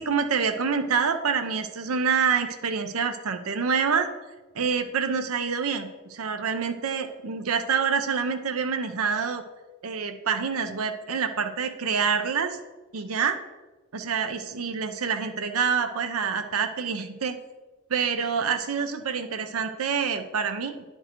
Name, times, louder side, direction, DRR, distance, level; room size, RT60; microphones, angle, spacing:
voice 1, 0.0-4.1 4.5-9.4 9.8-12.6 12.9-13.4 13.9-17.4 17.9-20.8, right 6 dB, 80° right, 7 dB, 0.6 m, -27 dB
10.0 x 4.5 x 4.5 m, 1.2 s
head